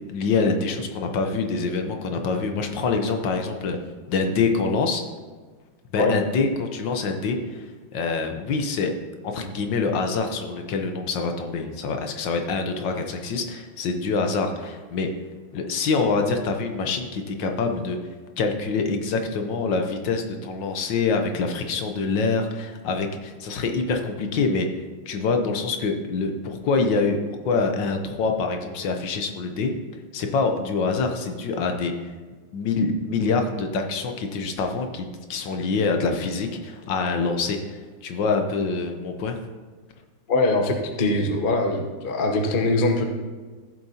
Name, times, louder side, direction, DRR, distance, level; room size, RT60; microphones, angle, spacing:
voice 1, 0.1-3.8 4.1-5.0 5.9-8.9 9.2-15.1 15.5-18.0 18.4-24.7 25.1-27.2 27.5-29.7 30.1-32.1 32.5-39.4, left 4 dB, 70° left, 4 dB, 1.5 m, -25 dB
voice 2, 40.3-43.0, left 2 dB, 45° left, 4 dB, 0.7 m, -22 dB
14.5 x 7.7 x 2.8 m, 1.4 s
omnidirectional pair, 2.2 m